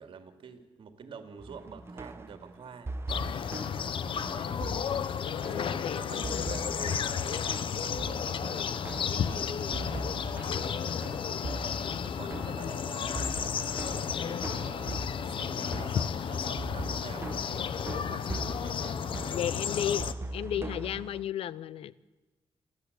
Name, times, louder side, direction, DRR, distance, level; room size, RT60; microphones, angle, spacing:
voice 1, 0.0-2.9 4.1-4.7 5.5-19.8, right 6 dB, 65° right, 7 dB, 2.7 m, -48 dB
sound 1, 1.4-21.3, right 2 dB, 25° right, 1.1 m, -41 dB
sound 2, 3.1-20.1, left 7 dB, 65° left, 1.0 m, -33 dB
voice 2, 5.3-6.6 19.3-20.1 20.3-21.9, left 10 dB, 85° left, 19 dB, 0.7 m, -34 dB
28.0 x 13.5 x 8.3 m, 1.2 s
cardioid pair, 100°, 10 cm